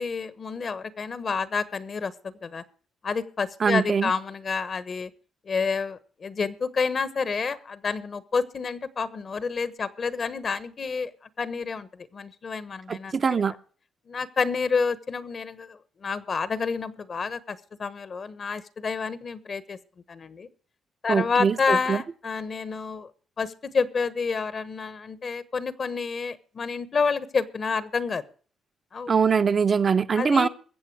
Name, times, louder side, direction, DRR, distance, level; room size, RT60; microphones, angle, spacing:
voice 1, 0.0-2.6 3.0-5.1 5.4-11.1 11.4-13.2 14.1-19.8 20.1-20.5 21.0-23.1 23.4-28.2 28.9-29.1 30.2-30.5, left 5 dB, 50° left, 1.1 m, -29 dB
voice 2, 3.6-4.1 12.9-13.5 21.1-22.0 29.1-30.5, right 6 dB, 45° right, 0.7 m, -22 dB
22.0 x 7.6 x 4.7 m
cardioid pair, 75°, 0 cm